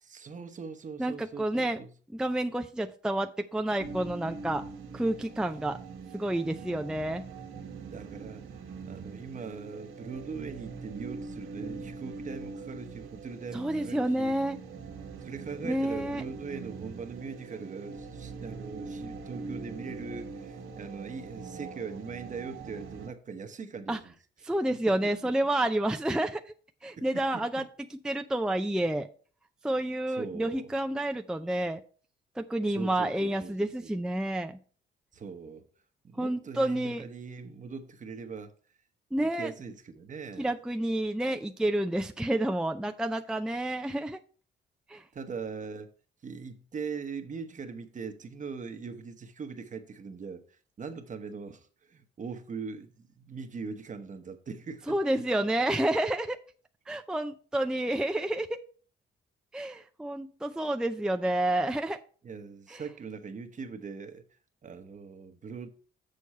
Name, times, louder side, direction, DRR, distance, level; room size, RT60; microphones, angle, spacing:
voice 1, 0.1-1.9 7.9-14.4 15.2-24.1 25.0-25.1 27.0-27.4 30.1-30.7 32.7-34.0 35.1-35.7 36.0-38.5 39.3-40.5 45.1-45.9 46.2-55.0 62.2-64.2 64.6-65.7, right 5 dB, 40° right, 1.0 m, -41 dB
voice 2, 1.0-1.8 2.1-4.6 4.9-5.8 6.1-7.2 13.5-14.6 15.6-16.2 23.9-24.0 24.4-26.5 26.8-27.6 27.9-29.1 29.6-31.8 32.4-34.6 36.2-37.0 39.1-39.5 40.4-44.2 44.9-45.0 54.9-56.4 56.9-58.6 59.5-62.0 62.7-62.8, right 1 dB, 5° right, 0.4 m, -29 dB
sound 1, 3.8-23.1, right 4 dB, 85° right, 1.5 m, -42 dB
6.9 x 6.5 x 4.2 m
cardioid pair, 90°, 20 cm